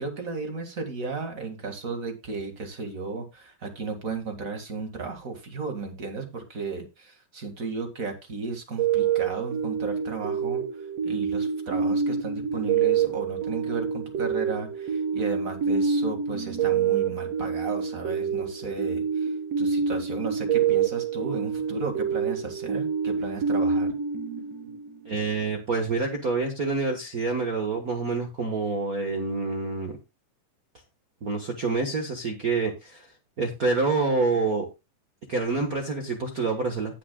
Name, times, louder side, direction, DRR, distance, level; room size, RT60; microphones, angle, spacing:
voice 1, 0.0-10.6 11.0-19.3 19.6-23.9, right 4 dB, 30° right, 4 dB, 1.7 m, -34 dB
sound 1, 8.8-25.1, right 6 dB, 55° right, 2.4 m, -27 dB
voice 2, 25.0-30.0 31.2-33.1 33.4-34.7 35.3-37.0, right 3 dB, 80° right, 3 dB, 0.8 m, -27 dB
18.0 x 6.1 x 2.2 m, 0.24 s
omnidirectional pair, 3.7 m